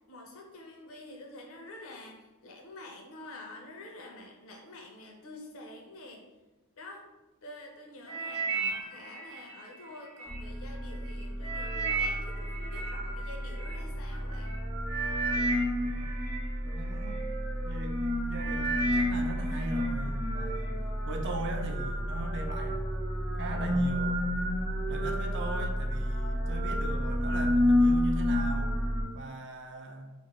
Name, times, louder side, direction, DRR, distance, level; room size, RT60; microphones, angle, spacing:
voice 1, 0.1-6.2 6.7-7.0 7.4-14.6, left 2 dB, 65° left, 1 dB, 0.6 m, -47 dB
sound 1, 8.0-10.4 10.9-13.8 14.5-14.6 14.9-17.2 17.8-18.0 18.3-19.9 20.2-20.7 21.3-21.4, right 4 dB, 80° right, 0.8 m, -35 dB
sound 2, 10.3-29.0, left 1 dB, ahead, 0.5 m, -30 dB
voice 2, 16.6-17.3 17.6-20.8 21.0-23.0 23.4-24.3 24.9-28.8 29.1-30.1, right 1 dB, 55° right, 3 dB, 0.4 m, -39 dB
2.6 x 2.5 x 3.0 m, 1.1 s
head